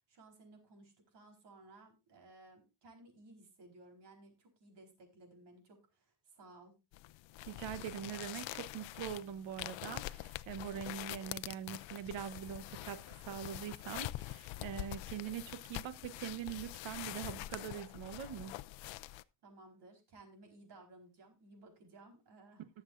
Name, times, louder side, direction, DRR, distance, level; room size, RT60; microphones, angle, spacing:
voice 1, 0.0-6.7 19.1-22.7, right 2 dB, 65° right, 4.3 m, -58 dB
sound 1, 6.9-19.2, left 17 dB, 80° left, 0.6 m, -45 dB
voice 2, 7.5-18.5, right 9 dB, 85° right, 1.2 m, -43 dB
20.5 x 7.3 x 2.5 m
cardioid pair, 160°, 45 cm